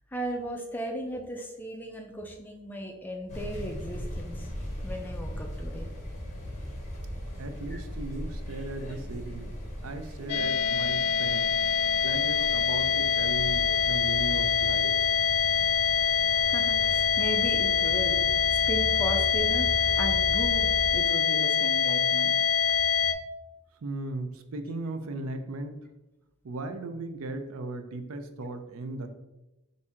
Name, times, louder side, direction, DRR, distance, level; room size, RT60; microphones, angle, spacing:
voice 1, 0.1-4.5 4.8-5.9 7.7-7.8 16.5-18.2 18.5-22.3 22.7-22.8, right 1 dB, 10° left, 1 dB, 0.4 m, -36 dB
sound 1, 3.3-21.0, left 1 dB, 35° left, 0.9 m, -38 dB
voice 2, 7.4-9.6 9.8-11.6 12.0-14.9 23.8-25.8 26.4-29.1, right 2 dB, 85° right, 8 dB, 0.5 m, -37 dB
sound 2, 10.3-23.1, left 7 dB, 85° left, 0.4 m, -25 dB
3.6 x 2.7 x 4.3 m, 0.97 s
head